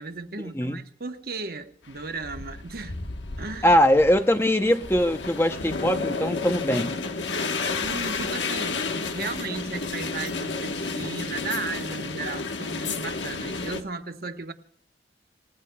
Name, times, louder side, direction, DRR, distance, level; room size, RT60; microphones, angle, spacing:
voice 1, 0.0-3.0 3.4-3.8 7.8-14.5, right 4 dB, 55° right, 1.0 m, -35 dB
sound 1, 1.9-13.8, left 4 dB, 85° left, 1.2 m, -31 dB
voice 2, 3.6-7.0, equal, 15° left, 0.7 m, -21 dB
28.5 x 17.0 x 2.3 m
head